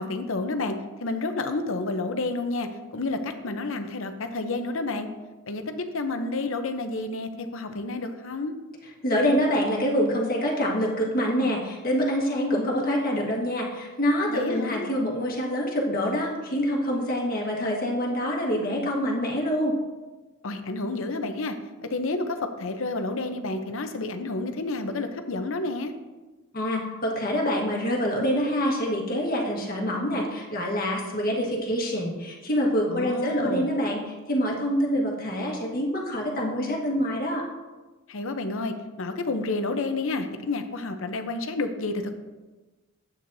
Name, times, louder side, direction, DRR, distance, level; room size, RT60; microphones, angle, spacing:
voice 1, 0.0-5.1 5.5-8.5 14.3-14.9 20.4-21.6 21.9-25.9 32.9-33.7 38.1-42.2, left 3 dB, 70° left, 7 dB, 0.8 m, -30 dB
voice 2, 9.0-19.7 26.5-37.4, equal, 45° left, -1 dB, 1.6 m, -26 dB
10.5 x 8.4 x 2.7 m, 1.2 s
head